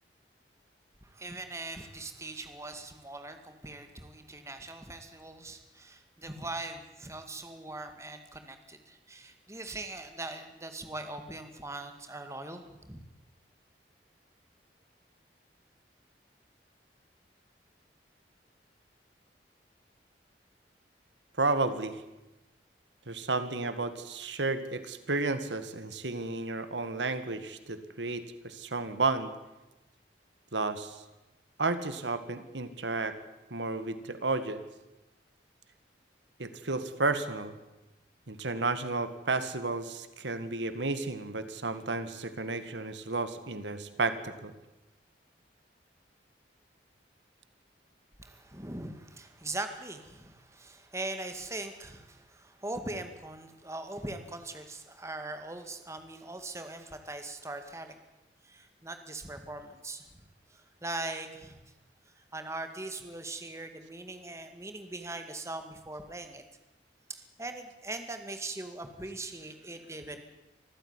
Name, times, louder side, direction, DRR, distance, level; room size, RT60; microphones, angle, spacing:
voice 1, 1.0-13.0 48.2-58.0 58.5-60.1 60.5-61.6 62.3-66.4 67.1-70.2, right 2 dB, 15° right, 7 dB, 2.1 m, -41 dB
voice 2, 21.4-22.0 23.1-29.3 30.5-31.0 31.6-33.2 33.5-34.6 36.4-37.6 38.3-44.5, right 3 dB, 90° right, 11 dB, 1.9 m, -32 dB
25.5 x 14.5 x 9.8 m, 1.0 s
head